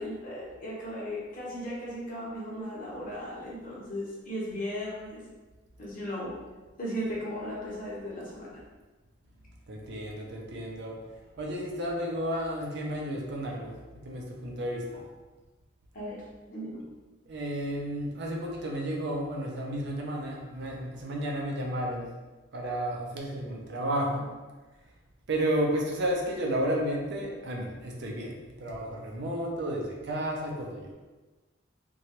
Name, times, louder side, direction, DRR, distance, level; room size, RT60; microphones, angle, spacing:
voice 1, 0.0-5.2 5.8-6.3 6.8-8.6 14.9-15.0 15.9-16.8, equal, 40° left, -6 dB, 0.8 m, -36 dB
voice 2, 9.7-11.0 11.4-13.7 14.0-15.0 17.3-22.1 22.5-24.3 25.3-30.9, right 1 dB, 55° right, -2 dB, 0.5 m, -32 dB
2.9 x 2.2 x 2.8 m, 1.2 s
head